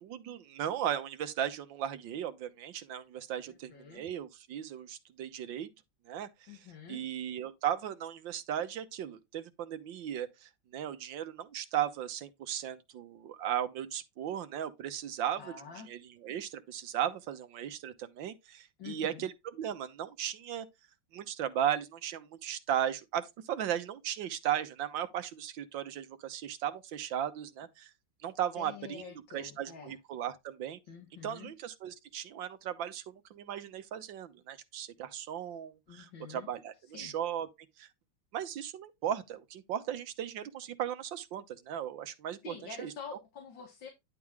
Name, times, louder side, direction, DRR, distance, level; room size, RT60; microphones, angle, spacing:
voice 1, 0.0-5.7 6.1-15.6 15.8-20.7 21.1-27.9 28.2-30.8 31.2-37.5 37.8-37.9 38.3-42.9, right 10 dB, 80° right, 1.6 m, -36 dB
voice 2, 3.5-4.0 6.5-7.0 15.4-15.9 18.8-19.3 28.6-30.0 30.9-31.5 35.9-36.5 36.9-37.1 42.4-43.9, left 6 dB, 85° left, 2.5 m, -47 dB
10.5 x 3.7 x 4.7 m
omnidirectional pair, 2.0 m